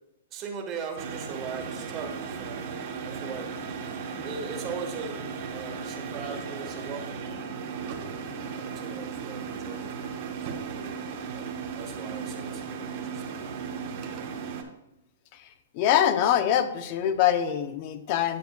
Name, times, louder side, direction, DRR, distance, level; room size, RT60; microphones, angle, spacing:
voice 1, 0.3-3.5 4.2-5.2 5.5-7.4 8.5-10.7 11.3-13.3 13.9-14.1, right 5 dB, 25° right, 2 dB, 1.3 m, -40 dB
sound 1, 1.0-14.6, right 5 dB, 45° right, 1.0 m, -36 dB
voice 2, 15.7-18.4, left 10 dB, 35° left, 10 dB, 0.6 m, -24 dB
9.4 x 6.7 x 2.3 m, 0.89 s
hypercardioid pair, 160°, 0 cm